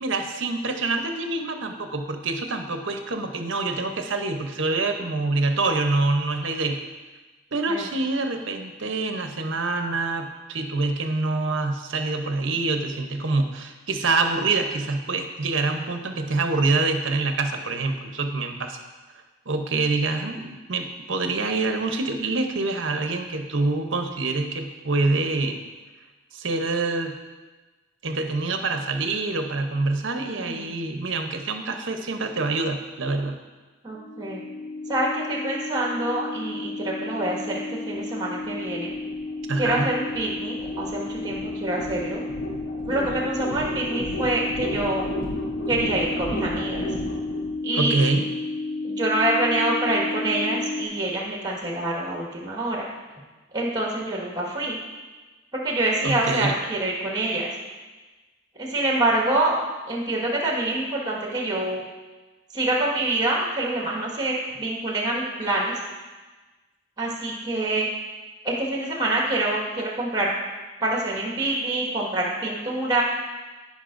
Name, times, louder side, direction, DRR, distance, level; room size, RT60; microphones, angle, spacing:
voice 1, 0.0-6.8 7.5-18.8 19.5-25.6 26.3-27.1 28.0-33.4 39.5-39.9 47.7-48.3 56.0-56.6, right 3 dB, 65° right, 5 dB, 0.8 m, -26 dB
voice 2, 30.1-30.7 33.8-34.4 34.9-38.9 39.6-42.2 42.8-45.1 45.7-46.8 47.6-47.9 48.8-52.9 53.5-54.8 55.5-57.5 58.6-59.6 59.9-61.8 62.5-65.7 67.0-67.9 68.4-70.3 70.8-73.0, right 2 dB, 20° right, -3 dB, 1.6 m, -26 dB
sound 1, 33.9-50.9, left 2 dB, 80° left, 2.6 m, -31 dB
14.5 x 5.4 x 2.5 m, 1.2 s
head